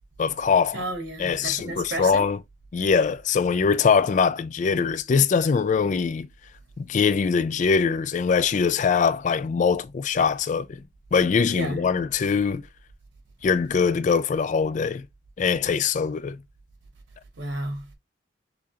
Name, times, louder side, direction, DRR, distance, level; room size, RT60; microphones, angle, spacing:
voice 1, 0.2-0.8 1.2-2.4 2.7-6.3 6.8-10.8 11.1-12.7 13.4-15.1 15.4-16.4, left 5 dB, 40° left, 0.3 m, -22 dB
voice 2, 0.7-2.3 11.5-11.8 17.4-17.9, right 2 dB, 70° right, 1.7 m, -32 dB
6.7 x 2.4 x 2.8 m
head